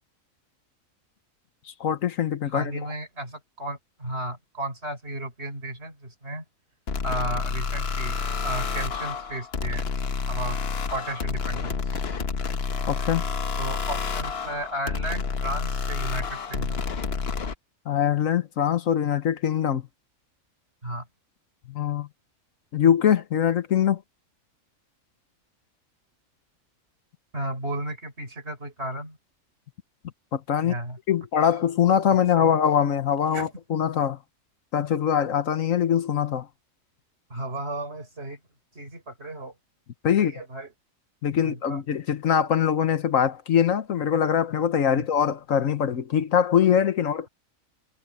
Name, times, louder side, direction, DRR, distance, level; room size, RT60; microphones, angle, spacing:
voice 1, 1.8-2.7 12.9-13.2 17.9-19.8 21.7-22.1 22.7-24.0 30.3-30.7 31.1-34.2 34.7-36.5 40.0-40.3 41.2-47.3, left 8 dB, 75° left, 1.4 m, -23 dB
voice 2, 2.5-6.4 7.0-8.2 8.4-9.8 10.3-10.6 10.9-12.0 13.6-16.8 20.8-21.1 27.3-29.2 30.6-31.0 32.4-32.5 33.3-33.5 37.3-38.4 38.7-39.5 40.2-40.7 41.4-41.8 44.9-45.1, right 1 dB, 50° right, 5.9 m, -34 dB
sound 1, 6.9-17.6, left 5 dB, 50° left, 1.3 m, -29 dB
omnidirectional pair, 1.4 m